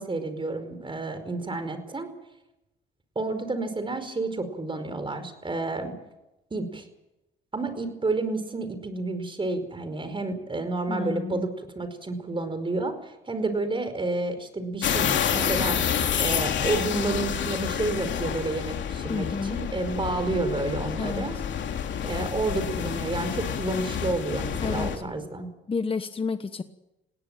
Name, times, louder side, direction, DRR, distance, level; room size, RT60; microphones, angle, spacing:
voice 1, 0.0-2.1 3.1-5.9 6.5-6.8 7.5-11.5 11.7-15.8 16.2-21.4 22.0-25.5, right 2 dB, 25° right, 10 dB, 5.0 m, -30 dB
voice 2, 10.9-11.5 19.1-19.6 20.9-21.2 24.6-25.0 25.7-26.6, left 4 dB, 25° left, 10 dB, 1.2 m, -30 dB
sound 1, 14.8-25.0, left 8 dB, 65° left, 3.1 m, -28 dB
20.5 x 17.5 x 9.1 m, 0.94 s
cardioid pair, 90°, 20 cm